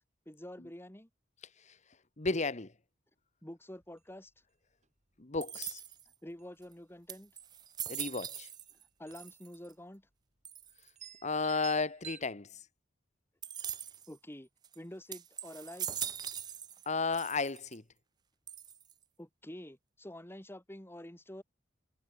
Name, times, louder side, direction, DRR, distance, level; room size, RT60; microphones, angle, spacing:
voice 1, 0.3-1.1 3.4-4.3 6.2-7.3 9.0-10.1 14.1-14.5 14.8-16.1 19.2-21.4, left 1 dB, 10° left, 2.1 m, -48 dB
voice 2, 2.2-2.7 5.2-5.8 7.9-8.5 11.2-12.5 16.8-17.8, left 4 dB, 40° left, 1.5 m, -33 dB
sound 1, 3.8-4.0 4.3-4.4 4.8-5.2 5.7-5.9 6.3-6.9 8.0-8.1 8.3-8.5 9.1-9.4 9.6-9.7 10.4-10.5 11.0-12.2, right 8 dB, 40° right, 6.1 m, -50 dB
sound 2, 5.4-6.1 6.7-6.8 7.1-8.8 9.1-9.7 10.4-10.9 13.4-14.1 14.6-14.8 15.1-16.9 17.1-17.8 18.5-19.0, right 9 dB, 20° right, 0.4 m, -41 dB
head